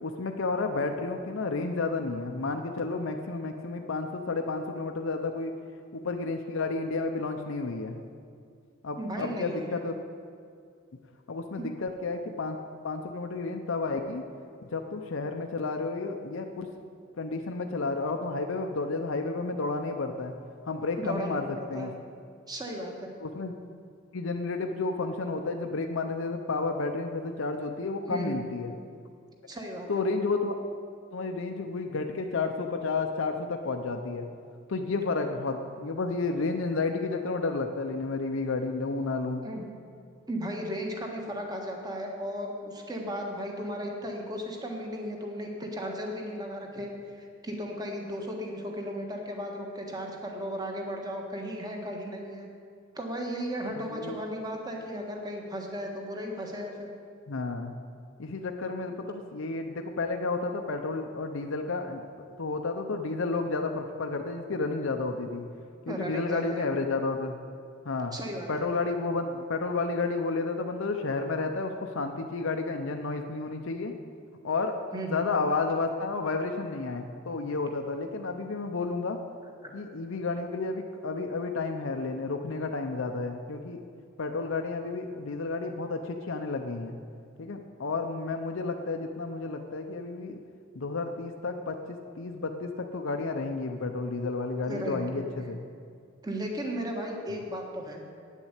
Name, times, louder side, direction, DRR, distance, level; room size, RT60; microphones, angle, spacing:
voice 1, 0.0-5.5 5.9-8.0 8.8-9.9 11.3-12.6 12.8-14.2 14.7-16.7 17.2-20.3 20.7-21.9 23.2-23.5 24.1-28.7 29.9-30.5 31.1-34.3 34.7-39.4 53.9-54.2 57.3-57.7 58.2-62.0 62.4-65.4 65.9-67.3 67.9-68.1 68.5-73.9 74.4-74.8 75.1-79.2 79.7-83.8 84.2-87.0 87.4-90.4 90.7-91.8 92.2-95.6, left 3 dB, 65° left, 4 dB, 0.7 m, -31 dB
voice 2, 9.0-9.8 11.6-11.7 21.0-21.9 22.5-23.1 28.1-28.4 29.5-30.0 39.4-39.7 40.3-46.9 47.2-52.5 52.9-56.9 65.9-66.6 68.1-68.7 74.9-75.3 79.4-79.7 94.6-95.2 96.2-98.0, equal, 20° right, 1 dB, 1.4 m, -35 dB
9.3 x 7.2 x 8.1 m, 2.3 s
head